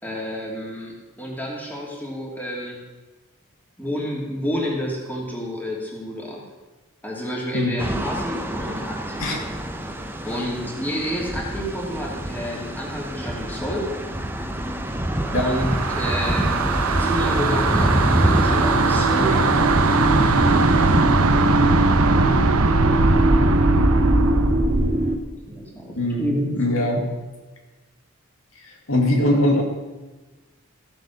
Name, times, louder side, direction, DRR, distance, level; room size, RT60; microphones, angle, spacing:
voice 1, 0.0-2.8 3.8-6.4 7.0-9.3 10.2-13.8 15.3-19.8 25.5-26.5, equal, 10° left, -3 dB, 2.6 m, -30 dB
sound 1, 7.8-21.0, right 1 dB, 10° right, 0.8 m, -27 dB
sound 2, 15.2-25.0, right 3 dB, 85° right, 0.9 m, -20 dB
sound 3, 16.9-25.2, right 1 dB, 40° right, 1.0 m, -23 dB
voice 2, 26.0-27.1 28.6-29.6, left 1 dB, 70° left, 1 dB, 2.3 m, -22 dB
15.0 x 8.0 x 6.5 m, 1.2 s
head